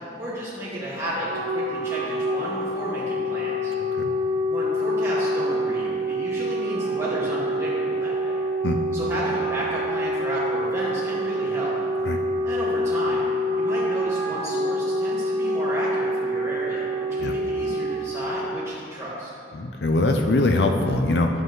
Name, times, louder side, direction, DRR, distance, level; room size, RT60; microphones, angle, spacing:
voice 1, 0.2-3.7 4.5-8.4 8.9-11.7 12.4-13.3 13.6-19.3, equal, 15° right, -8 dB, 2.3 m, -32 dB
Wind instrument woodwind instrument, 1.1-18.5, equal, 80° right, 2.0 m, -26 dB
voice 2, 19.5-21.3, left 2 dB, 65° left, 4 dB, 0.5 m, -22 dB
11.5 x 7.7 x 3.2 m, 2.4 s
head